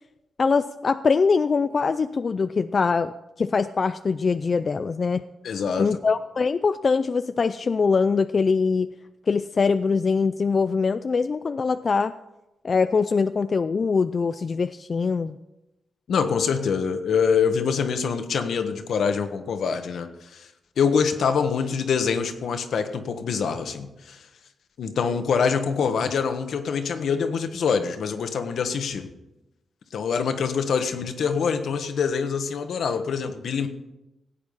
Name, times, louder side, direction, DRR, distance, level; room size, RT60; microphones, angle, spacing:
voice 1, 0.4-3.1 3.4-5.2 5.8-8.9 9.3-12.1 12.6-15.4, left 5 dB, 45° left, 11 dB, 0.4 m, -23 dB
voice 2, 5.4-6.0 16.1-20.1 20.3-20.5 20.8-24.2 24.8-29.1 29.9-33.7, left 6 dB, 75° left, 8 dB, 1.3 m, -25 dB
17.0 x 8.6 x 5.6 m, 0.97 s
cardioid pair, 100°, 0 cm